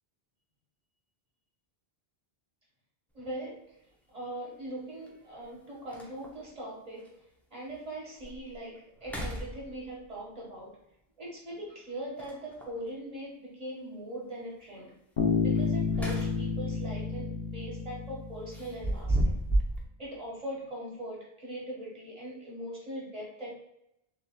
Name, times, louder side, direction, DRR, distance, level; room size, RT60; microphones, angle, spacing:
voice 1, 3.1-3.6 4.1-7.1 7.5-10.8 11.2-15.0 15.4-19.3 20.0-23.5, right 1 dB, 40° right, -4 dB, 1.6 m, -41 dB
sound 1, 3.2-3.3 5.1-5.2 5.6-5.7 5.9-6.5 7.0-7.1 7.7-7.8 8.2-8.5 9.0-10.1 12.2-12.8 15.6-16.6 17.0-17.2 18.5-19.8, right 1 dB, ahead, 0.5 m, -32 dB
Bass guitar, 15.2-18.9, left 6 dB, 50° left, 0.7 m, -30 dB
6.6 x 2.8 x 2.3 m, 0.81 s
omnidirectional pair, 1.0 m